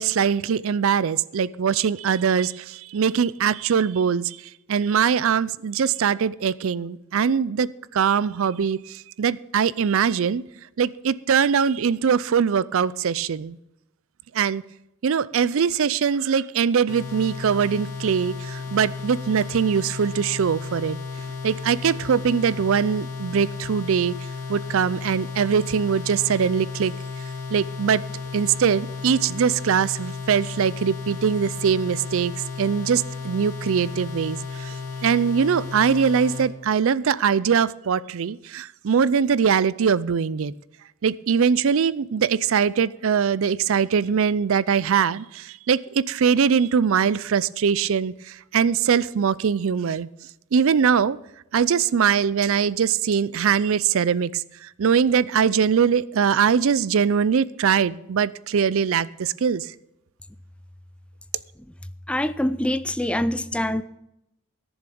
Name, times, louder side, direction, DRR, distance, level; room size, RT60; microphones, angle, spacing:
voice 1, 0.0-4.4 4.7-10.4 10.8-13.6 14.3-14.6 15.0-21.0 21.4-24.1 24.5-26.9 27.5-28.0 28.3-34.7 35.0-40.5 41.0-50.1 50.5-51.2 51.5-59.7, right 7 dB, 65° right, 19 dB, 0.4 m, -22 dB
sound 1, 16.9-36.5, left 4 dB, 85° left, 2.3 m, -34 dB
voice 2, 62.1-63.8, left 1 dB, 5° left, 13 dB, 0.4 m, -24 dB
14.0 x 7.1 x 6.9 m, 0.86 s
head